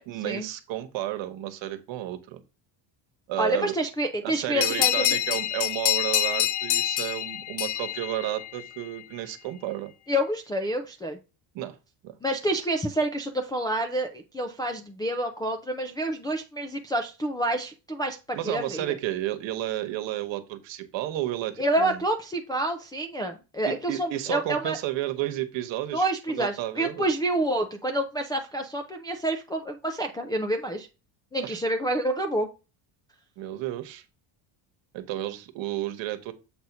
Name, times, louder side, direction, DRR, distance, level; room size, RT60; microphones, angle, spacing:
voice 1, 0.1-2.4 3.3-3.7 4.2-9.9 11.5-11.8 12.0-12.2 18.3-22.0 23.6-27.1 31.4-31.6 33.4-34.0 34.9-36.3, right 13 dB, 65° right, 9 dB, 1.2 m, -32 dB
voice 2, 3.4-5.2 10.1-11.2 12.2-18.8 21.6-24.8 25.9-30.9 31.3-32.5, right 1 dB, 10° left, 1 dB, 0.3 m, -28 dB
sound 1, 4.6-8.8, left 13 dB, 60° left, 0.6 m, -26 dB
7.6 x 2.8 x 5.9 m, 0.29 s
cardioid pair, 165°, 48 cm